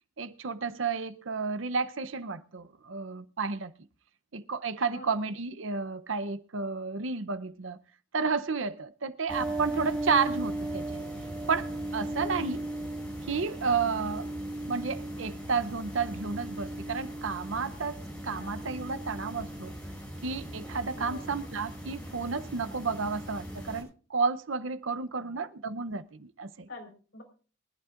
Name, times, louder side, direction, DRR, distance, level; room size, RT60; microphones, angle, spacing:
voice 1, 0.2-3.7 4.3-7.8 8.1-11.1 11.5-12.6 13.3-14.3 14.7-19.7 20.2-26.7, right 5 dB, 70° right, 0.8 m, -32 dB
sound 1, 9.3-23.8, right 1 dB, 5° left, 7.2 m, -37 dB
voice 2, 12.2-12.7 18.3-18.7 20.9-21.4 25.2-25.4 26.7-27.2, left 2 dB, 60° left, 4.7 m, -47 dB
23.5 x 11.5 x 2.5 m
head